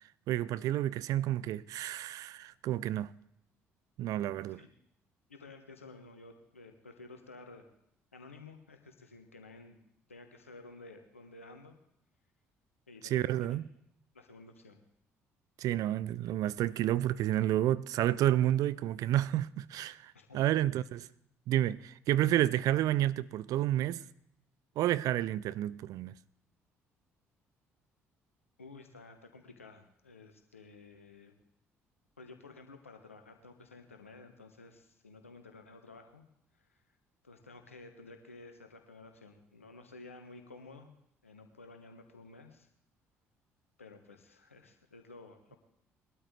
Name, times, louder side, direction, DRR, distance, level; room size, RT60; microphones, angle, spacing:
voice 1, 0.3-3.1 4.0-4.6 13.0-13.6 15.6-21.0 21.5-24.0 24.8-26.1, right 13 dB, 55° right, 0.4 m, -30 dB
voice 2, 5.3-7.7 8.1-9.8 10.1-11.8 12.9-13.6 14.1-14.8 20.1-20.9 28.6-31.3 32.2-36.3 36.6-36.8 37.2-40.9 41.2-42.7 43.8-45.6, left 3 dB, 85° left, 1.2 m, -53 dB
21.0 x 12.5 x 3.2 m
figure-of-eight pair, 50°, 7 cm